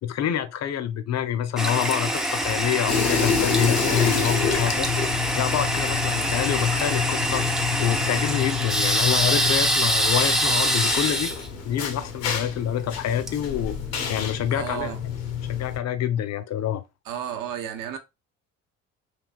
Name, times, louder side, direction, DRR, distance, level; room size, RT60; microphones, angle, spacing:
voice 1, 0.0-4.9 5.4-7.4 7.8-11.3 11.6-13.8 14.1-14.9 15.4-16.8, left 10 dB, 45° left, 0.6 m, -26 dB
Toilet flush, 1.6-14.2, equal, ahead, 0.4 m, -25 dB
sound 1, 2.9-15.8, left 7 dB, 75° left, 0.8 m, -28 dB
voice 2, 14.5-15.0 17.0-18.0, right 9 dB, 60° right, 0.7 m, -32 dB
3.3 x 2.7 x 2.4 m
hypercardioid pair, 60°, 36 cm